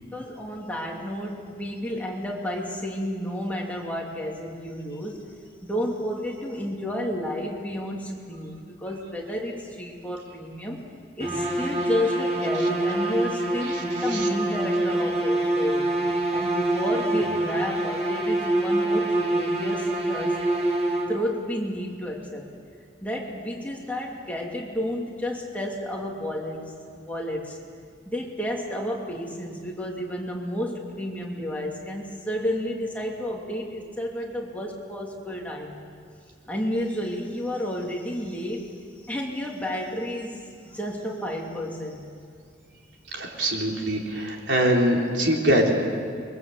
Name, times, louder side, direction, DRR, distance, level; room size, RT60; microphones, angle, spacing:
voice 1, 0.1-5.2 5.6-15.9 16.3-20.4 21.1-22.4 23.0-26.6 26.9-27.6 28.1-35.8 36.5-42.1, equal, 10° left, -2 dB, 2.8 m, -31 dB
sound 1, 11.2-21.4, right 1 dB, 30° right, 2.4 m, -25 dB
voice 2, 13.6-14.3 43.1-45.7, right 1 dB, 70° right, 0 dB, 3.9 m, -24 dB
28.5 x 23.0 x 8.0 m, 2.2 s
head